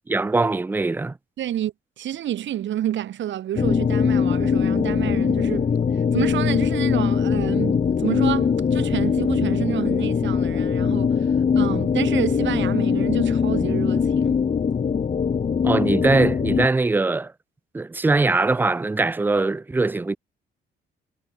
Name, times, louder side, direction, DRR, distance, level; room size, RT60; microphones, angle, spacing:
voice 1, 0.1-1.2 15.6-17.3 17.7-20.2, right 3 dB, 10° right, 0.4 m, -21 dB
voice 2, 1.4-14.4, right 11 dB, 70° right, 1.5 m, -29 dB
sound 1, 3.6-16.7, left 6 dB, 35° left, 1.3 m, -21 dB
cardioid pair, 90°, 20 cm